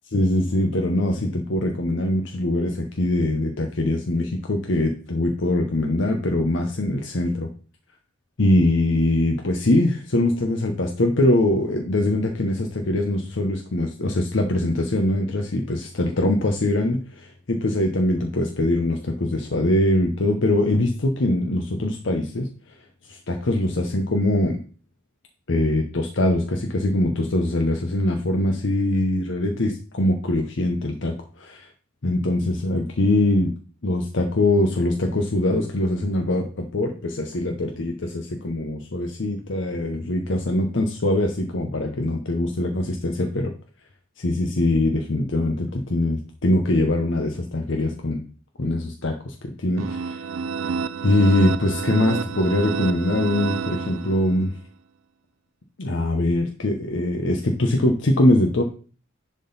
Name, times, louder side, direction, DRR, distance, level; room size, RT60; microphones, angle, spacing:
voice 1, 0.1-7.5 8.4-22.5 23.0-24.6 25.5-31.7 32.0-33.5 33.8-43.5 44.2-48.2 48.6-50.3 51.0-54.6 55.8-58.6, left 1 dB, 65° left, 3 dB, 0.8 m, -22 dB
sound 1, 49.8-54.5, right 6 dB, 80° right, 0.4 m, -29 dB
10.5 x 3.8 x 4.0 m, 0.38 s
head